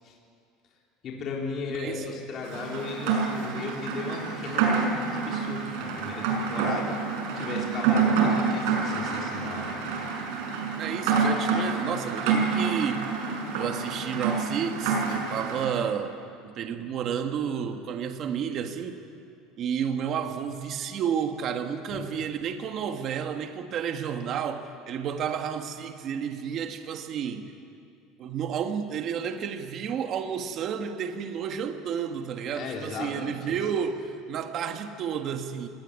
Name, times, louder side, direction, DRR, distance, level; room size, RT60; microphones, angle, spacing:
voice 1, 1.0-7.0 7.3-9.8 21.9-22.2 32.5-33.6, left 4 dB, 35° left, -2 dB, 4.0 m, -36 dB
voice 2, 1.7-2.1 10.8-13.1 13.5-16.2 16.4-19.0 19.6-27.4 28.2-35.7, right 7 dB, 40° right, 6 dB, 1.7 m, -31 dB
Rain, 2.4-15.7, right 5 dB, 75° right, 6.0 m, -27 dB
27.0 x 18.5 x 9.6 m, 2.4 s
cardioid pair, 155°, 0 cm